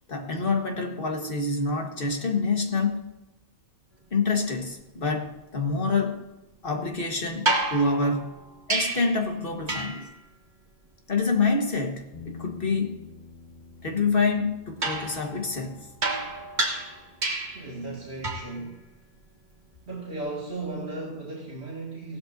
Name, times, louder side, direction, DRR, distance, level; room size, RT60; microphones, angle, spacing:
voice 1, 0.1-3.1 4.1-6.2 6.6-8.3 8.7-10.1 11.1-13.0 13.8-15.9, left 4 dB, 60° left, 3 dB, 1.7 m, -27 dB
sound 1, 7.5-9.2 9.7-10.1 14.8-17.7 18.2-18.6 20.6-20.7, right 2 dB, 45° right, 1.7 m, -30 dB
Bass guitar, 12.1-18.4, left 5 dB, 80° left, 1.9 m, -49 dB
voice 2, 17.5-18.8 19.9-22.2, right 2 dB, 80° right, -6 dB, 2.6 m, -36 dB
16.5 x 12.5 x 2.7 m, 1.0 s
omnidirectional pair, 1.1 m